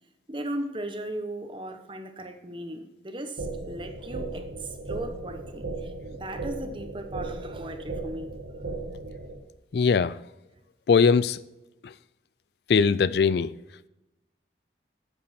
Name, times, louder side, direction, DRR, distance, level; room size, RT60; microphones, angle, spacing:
voice 1, 0.3-8.3, right 1 dB, 30° right, 7 dB, 1.1 m, -37 dB
sound 1, 3.4-9.4, right 3 dB, 80° right, 2.3 m, -36 dB
voice 2, 9.7-10.2 10.9-11.4 11.8-11.9 12.7-13.5, left 5 dB, 60° left, 17 dB, 0.4 m, -21 dB
9.5 x 8.6 x 4.4 m, 0.95 s
head